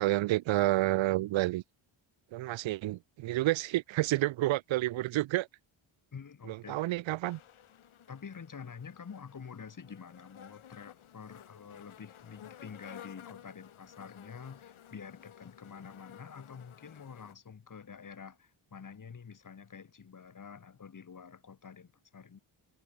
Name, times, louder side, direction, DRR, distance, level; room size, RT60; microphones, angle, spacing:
voice 1, 0.0-1.6 2.3-5.5 6.5-7.4, right 16 dB, 70° right, 0.5 m, -29 dB
voice 2, 6.1-6.9 8.1-22.4, left 6 dB, 40° left, 3.2 m, -48 dB
sound 1, 7.2-17.3, left 10 dB, 80° left, 5.2 m, -54 dB
wide cardioid pair, 140°, 49 cm